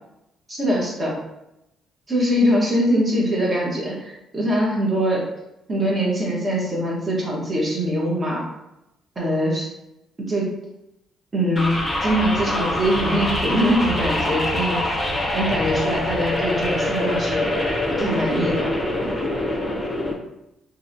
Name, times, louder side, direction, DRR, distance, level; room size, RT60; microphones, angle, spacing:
voice 1, 0.5-1.2 2.1-5.2 5.7-8.5 9.2-9.7 10.2-10.5 11.3-14.8 15.3-17.5 17.9-18.7, equal, 30° right, -4 dB, 1.1 m, -22 dB
sound 1, 11.5-20.1, left 1 dB, 15° left, 0.7 m, -24 dB
2.9 x 2.7 x 2.6 m, 0.88 s
cardioid pair, 85°, 0 cm